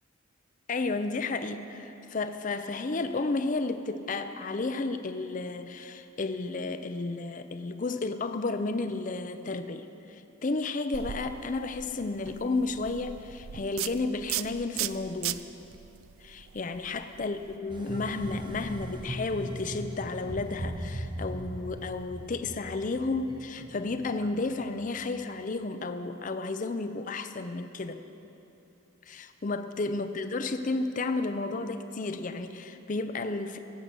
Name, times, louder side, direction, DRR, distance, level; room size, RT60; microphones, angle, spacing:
voice 1, 0.7-15.4 16.2-28.0 29.1-33.6, left 3 dB, 40° left, 9 dB, 0.5 m, -32 dB
sound 1, 10.9-17.6, right 12 dB, 85° right, 0.4 m, -38 dB
sound 2, 17.7-25.2, right 1 dB, 25° right, 0.8 m, -39 dB
17.0 x 7.5 x 6.8 m, 2.9 s
head